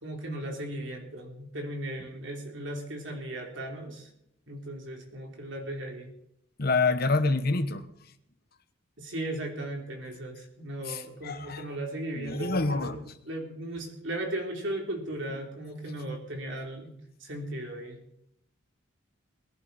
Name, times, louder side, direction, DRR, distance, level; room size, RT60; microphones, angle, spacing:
voice 1, 0.0-4.1 4.5-6.1 9.0-16.9 17.2-18.0, right 1 dB, 60° right, 3.4 m, -36 dB
voice 2, 6.6-7.8 10.9-11.7 12.2-13.0, left 3 dB, 50° left, 1.1 m, -27 dB
21.0 x 11.0 x 4.2 m
head